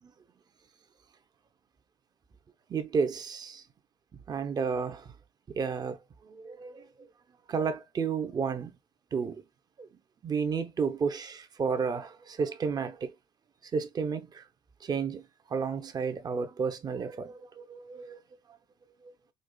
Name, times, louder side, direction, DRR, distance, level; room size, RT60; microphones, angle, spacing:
voice 1, 2.7-3.6 4.3-5.1 5.5-7.1 7.5-8.7 9.1-9.4 9.8-9.9 10.2-13.1 13.7-14.4 14.8-18.2, right 5 dB, 35° right, 0.8 m, -32 dB
5.3 x 2.4 x 2.3 m
supercardioid pair, 75°, 11 cm